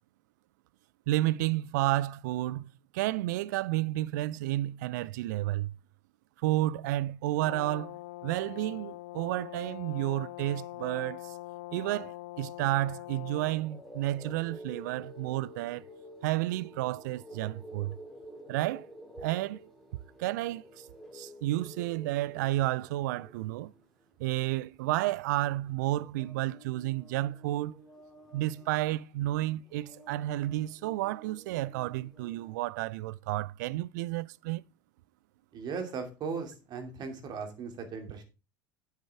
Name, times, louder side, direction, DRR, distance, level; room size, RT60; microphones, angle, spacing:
voice 1, 1.1-5.7 6.4-11.3 11.7-15.8 16.2-18.0 18.5-18.9 19.2-19.6 20.2-20.9 21.1-23.7 24.2-27.7 28.3-34.6, right 16 dB, 60° right, 0.4 m, -31 dB
Brass instrument, 7.3-13.6, left 17 dB, 60° left, 0.5 m, -43 dB
sound 1, 13.2-32.6, equal, ahead, 2.5 m, -51 dB
voice 2, 35.5-38.2, right 5 dB, 40° right, 2.6 m, -37 dB
9.3 x 8.2 x 3.5 m
figure-of-eight pair, 75°, 11 cm